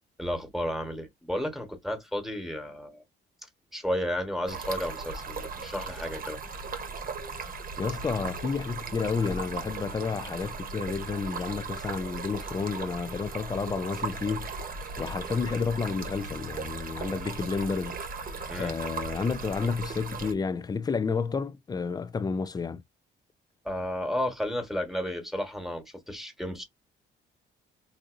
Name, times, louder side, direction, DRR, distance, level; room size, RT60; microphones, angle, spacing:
voice 1, 0.2-3.0 3.7-6.4 18.5-18.7 23.6-26.6, equal, ahead, 1.3 m, -32 dB
Stream, 4.5-20.3, right 4 dB, 45° right, 1.0 m, -37 dB
voice 2, 7.8-14.5 15.0-18.0 18.6-22.8, left 5 dB, 20° left, 0.3 m, -30 dB
4.0 x 2.6 x 2.5 m
cardioid pair, 90°, 20 cm